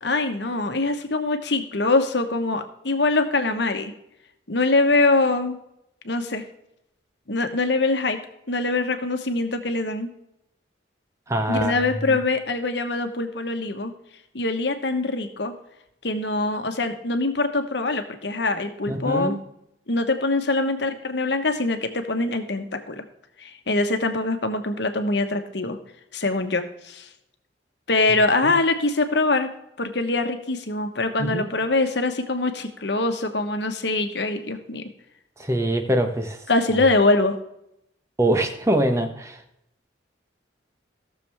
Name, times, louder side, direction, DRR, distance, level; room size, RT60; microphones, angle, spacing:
voice 1, 0.0-3.9 4.5-5.6 6.0-6.4 7.3-8.2 8.5-10.1 11.5-13.9 14.3-15.5 16.0-19.4 19.9-23.0 23.4-25.8 26.1-27.1 27.9-29.5 29.8-34.9 36.5-37.4, left 2 dB, 65° left, 7 dB, 1.2 m, -23 dB
voice 2, 11.3-11.8 18.9-19.4 31.2-31.4 35.4-36.4 38.2-39.4, right 1 dB, 15° right, 6 dB, 1.0 m, -23 dB
17.0 x 6.8 x 3.5 m, 0.79 s
head